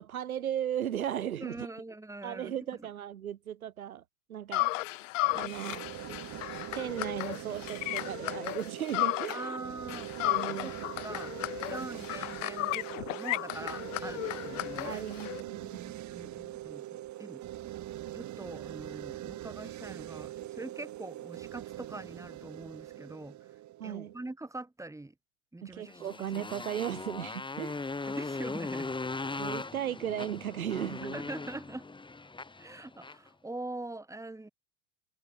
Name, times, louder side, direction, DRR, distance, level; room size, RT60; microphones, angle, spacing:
voice 1, 0.0-1.7 2.2-4.0 4.3-5.0 5.3-5.9 6.7-9.5 10.2-10.9 14.8-15.8 23.8-24.1 25.6-27.8 29.4-31.2, right 10 dB, 85° right, 1.1 m, -36 dB
voice 2, 1.4-2.6 9.3-10.1 10.6-10.7 11.0-11.3 11.7-15.1 15.8-17.4 18.1-23.5 23.8-25.1 25.5-26.5 28.1-29.0 31.1-31.9 32.6-34.5, right 2 dB, 5° right, 4.6 m, -43 dB
sound 1, 4.5-9.6 9.9-15.4, left 20 dB, 65° left, 0.6 m, -34 dB
sound 2, 5.2-24.3, right 14 dB, 40° right, 4.6 m, -42 dB
Motorcycle, 25.9-33.3, left 3 dB, 10° left, 2.8 m, -39 dB
hypercardioid pair, 80°, 42 cm